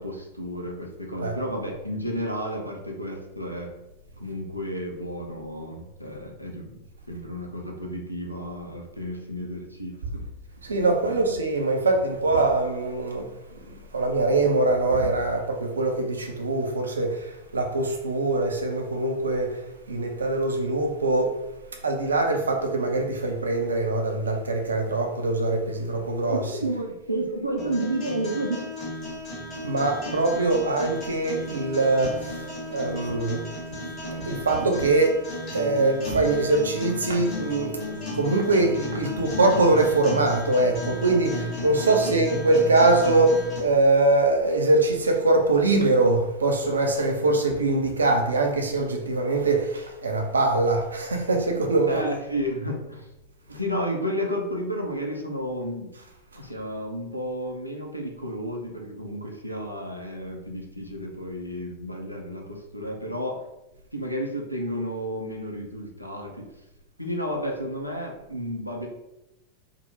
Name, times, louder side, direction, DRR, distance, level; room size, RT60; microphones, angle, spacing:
voice 1, 0.0-3.8 4.2-6.8 7.1-10.3 11.0-11.2 26.3-28.7 29.8-30.0 41.8-42.2 51.9-53.1 53.5-55.9 56.3-63.4 63.9-66.5 67.0-68.9, equal, 90° left, 0.5 m, -32 dB
voice 2, 10.6-13.3 13.9-19.6 19.9-21.4 21.8-26.7 29.6-33.4 33.7-33.8 34.2-52.0, right 2 dB, 75° right, 0.5 m, -23 dB
sound 1, 27.6-43.6, left 1 dB, 35° left, 1.3 m, -34 dB
3.6 x 2.1 x 2.7 m
figure-of-eight pair, 90°, 0 cm